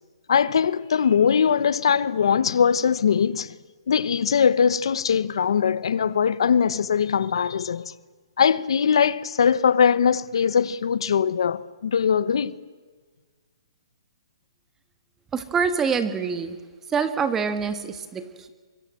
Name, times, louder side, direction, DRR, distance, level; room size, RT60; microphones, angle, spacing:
voice 1, 0.3-3.5 3.9-7.9 8.4-12.5, left 7 dB, 70° left, 1.0 m, -21 dB
voice 2, 15.3-16.6 16.9-18.5, right 6 dB, 10° right, 1.5 m, -25 dB
24.5 x 23.5 x 7.7 m
hypercardioid pair, 155°, 3 cm